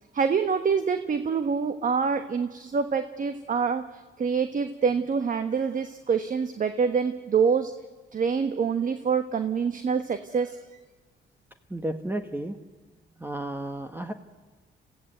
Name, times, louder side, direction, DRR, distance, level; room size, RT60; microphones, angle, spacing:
voice 1, 0.1-7.7 8.1-10.6, right 6 dB, 40° right, 9 dB, 1.2 m, -26 dB
voice 2, 11.7-12.6 13.2-14.1, right 1 dB, 10° right, 7 dB, 1.3 m, -32 dB
26.5 x 15.5 x 8.0 m, 1.3 s
cardioid pair, 90°, 20 cm